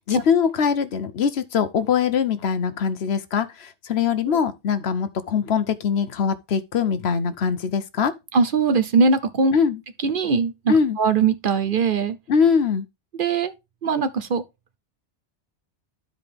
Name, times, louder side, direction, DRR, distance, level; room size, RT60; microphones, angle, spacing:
voice 1, 0.1-8.1 9.5-9.8 10.7-11.0 12.3-12.8, left 6 dB, 70° left, 1.0 m, -22 dB
voice 2, 8.3-9.6 10.0-12.2 13.1-13.5 13.8-14.4, right 5 dB, 55° right, 0.8 m, -21 dB
12.5 x 4.9 x 3.4 m
omnidirectional pair, 1.2 m